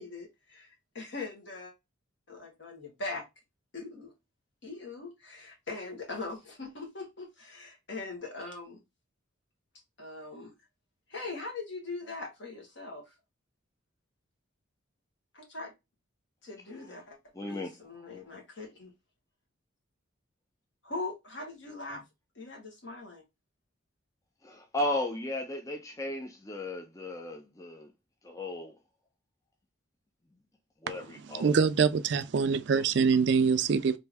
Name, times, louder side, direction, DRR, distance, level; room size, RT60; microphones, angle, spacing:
voice 1, 0.0-1.7 2.3-3.2 3.7-4.1 4.6-8.8 10.0-10.5 11.1-13.0 15.3-15.7 16.4-17.2 17.4-18.9 20.8-22.0 22.3-23.2, left 3 dB, 60° left, 1.3 m, -41 dB
voice 2, 17.3-18.1 24.4-27.9 28.2-28.7 30.8-31.6 32.7-32.8, left 1 dB, 15° left, 0.4 m, -35 dB
voice 3, 31.3-34.0, right 5 dB, 55° right, 0.4 m, -25 dB
3.3 x 2.6 x 3.3 m
head